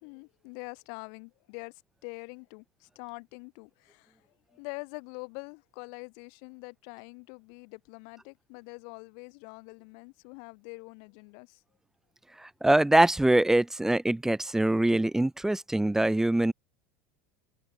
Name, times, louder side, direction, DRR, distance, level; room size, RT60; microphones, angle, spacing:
voice 1, 0.0-1.7 2.0-4.1 4.5-11.6, left 40 dB or more, 65° left, 3.3 m, -44 dB
voice 2, 12.4-16.5, right 1 dB, 5° right, 2.2 m, -23 dB
supercardioid pair, 105°, 7 cm